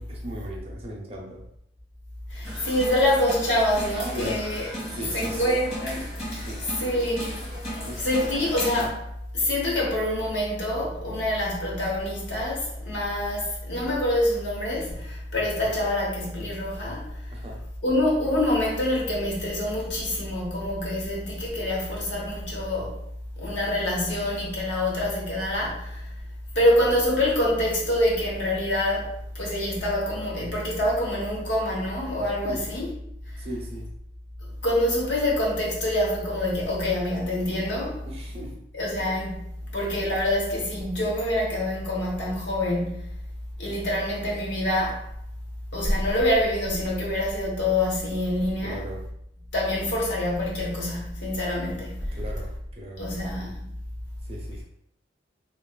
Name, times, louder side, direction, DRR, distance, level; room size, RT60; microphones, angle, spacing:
voice 1, 0.1-1.4 4.1-4.4 4.9-5.4 6.4-6.7 7.8-8.1 17.3-17.6 32.4-32.7 33.4-33.9 38.0-38.6 48.6-49.0 52.1-53.2 54.2-54.6, right 1 dB, 35° right, -2 dB, 0.6 m, -38 dB
voice 2, 2.3-4.7 5.1-6.5 6.8-7.3 7.6-17.1 17.8-23.0 23.4-26.1 26.5-32.8 34.6-38.0 38.7-39.4 39.7-43.1 43.6-45.0 45.7-48.8 49.5-52.2 53.0-53.6, left 1 dB, 75° left, -4 dB, 1.0 m, -26 dB
sound 1, 2.4-8.9, equal, 50° left, 1.4 m, -36 dB
2.9 x 2.9 x 2.4 m, 0.76 s
head